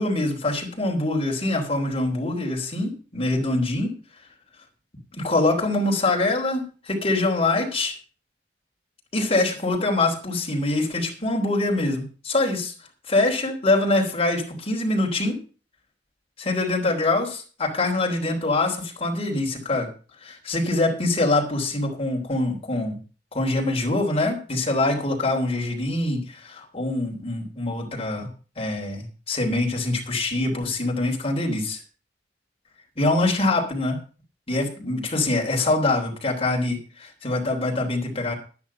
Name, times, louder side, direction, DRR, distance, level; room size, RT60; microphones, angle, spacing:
voice 1, 0.0-3.9 5.1-7.9 9.1-12.7 13.1-15.4 16.4-19.9 20.2-23.0 23.3-28.3 28.6-31.8 33.0-34.0 34.5-38.3, left 2 dB, 35° left, 0 dB, 3.4 m, -24 dB
11.0 x 9.7 x 5.7 m, 0.38 s
head